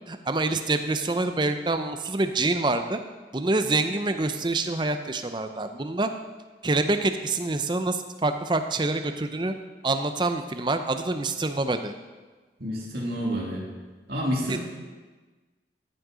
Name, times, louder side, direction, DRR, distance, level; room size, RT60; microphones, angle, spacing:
voice 1, 0.1-3.0 3.3-6.1 6.6-9.5 9.8-11.9 14.5-14.6, right 2 dB, 25° right, 8 dB, 0.6 m, -26 dB
voice 2, 12.6-13.6 14.1-14.6, equal, 60° right, -3 dB, 2.6 m, -29 dB
14.0 x 6.5 x 5.0 m, 1.3 s
head